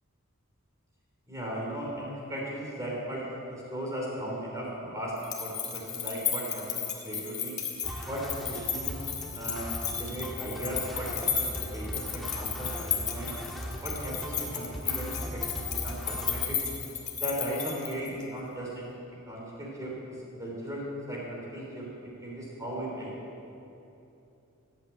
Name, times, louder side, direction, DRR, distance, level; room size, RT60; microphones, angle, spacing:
voice 1, 1.3-7.5 8.1-8.9 9.3-9.7 10.0-13.3 13.8-16.6 17.1-18.8 19.2-23.1, right 1 dB, 15° right, -4 dB, 3.3 m, -37 dB
sound 1, 5.2-18.2, left 7 dB, 35° left, 1.8 m, -34 dB
sound 2, 7.8-16.4, equal, ahead, 1.5 m, -39 dB
16.5 x 9.0 x 8.5 m, 2.9 s
head